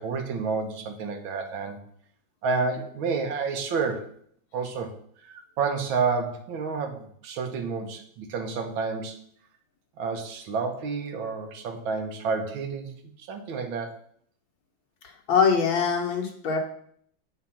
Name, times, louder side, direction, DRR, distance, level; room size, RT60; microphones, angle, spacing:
voice 1, 0.0-1.8 2.4-4.1 4.5-4.9 5.2-9.2 10.0-13.9, right 4 dB, 85° right, 6 dB, 1.8 m, -30 dB
voice 2, 15.3-16.6, left 6 dB, 80° left, 1 dB, 2.2 m, -23 dB
8.0 x 5.0 x 5.7 m, 0.64 s
omnidirectional pair, 2.1 m